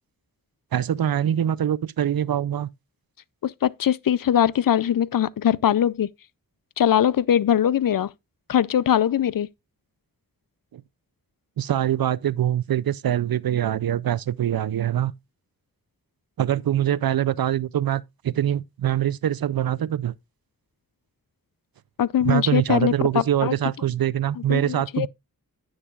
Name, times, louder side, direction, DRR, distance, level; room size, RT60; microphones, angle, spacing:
voice 1, 0.7-2.7 10.7-10.8 11.6-15.1 16.4-20.1 22.2-25.1, right 11 dB, 80° right, 0.5 m, -24 dB
voice 2, 3.4-6.1 6.8-8.1 8.5-9.5 22.0-23.5 24.5-25.1, left 10 dB, 70° left, 0.5 m, -21 dB
10.0 x 8.9 x 2.4 m
wide cardioid pair, 55°, 35 cm